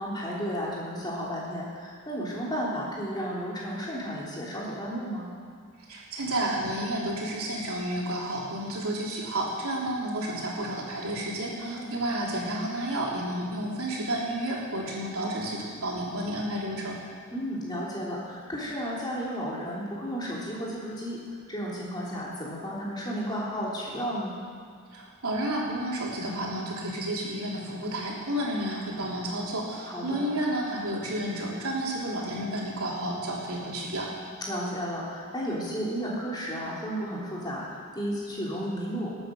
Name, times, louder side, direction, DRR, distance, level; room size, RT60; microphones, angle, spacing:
voice 1, 0.0-5.3 11.6-11.9 17.3-21.2 21.5-24.4 29.8-30.3 34.5-39.1, equal, 20° left, -6 dB, 3.3 m, -33 dB
voice 2, 5.9-17.0 24.9-34.1, right 1 dB, 85° right, -3 dB, 3.3 m, -31 dB
20.0 x 8.8 x 6.5 m, 2.1 s
head